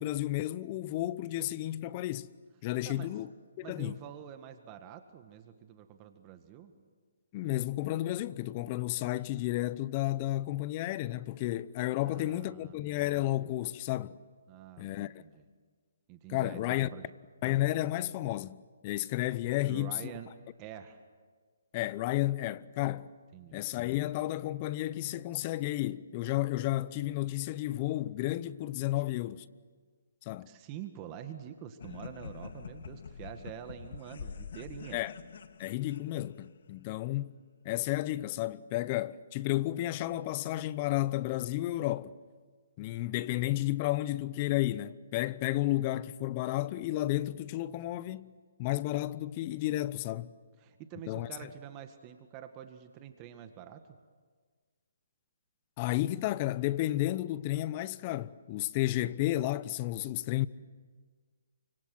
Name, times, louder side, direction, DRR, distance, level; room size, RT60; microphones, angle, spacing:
voice 1, 0.0-2.3 2.6-3.3 3.6-4.0 7.3-14.2 14.8-15.2 16.3-16.9 17.4-20.1 21.7-23.1 23.5-29.5 30.2-30.5 34.9-35.1 35.6-37.4 37.6-42.1 42.8-48.3 48.6-50.3 51.1-51.3 55.8-60.5, left 16 dB, 30° left, 0.9 m, -32 dB
voice 2, 3.6-6.7 12.0-13.0 14.5-15.4 16.1-17.1 19.6-20.3 20.6-21.0 23.3-23.6 30.5-35.0 50.6-53.8, right 10 dB, 25° right, 1.8 m, -46 dB
sound 1, 31.8-36.6, left 6 dB, 60° left, 1.4 m, -46 dB
29.0 x 25.5 x 7.8 m
hypercardioid pair, 150°, 0 cm